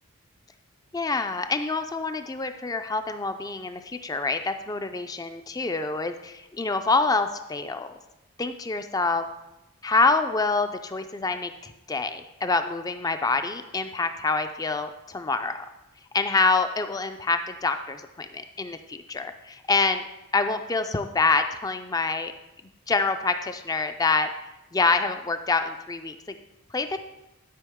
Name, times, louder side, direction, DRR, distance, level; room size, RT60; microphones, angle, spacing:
voice 1, 0.9-7.9 8.4-9.2 9.8-15.7 16.1-20.1 20.3-22.3 22.9-24.3 24.7-26.2 26.7-27.1, left 3 dB, 15° left, 8 dB, 0.4 m, -26 dB
11.0 x 5.4 x 3.6 m, 0.95 s
head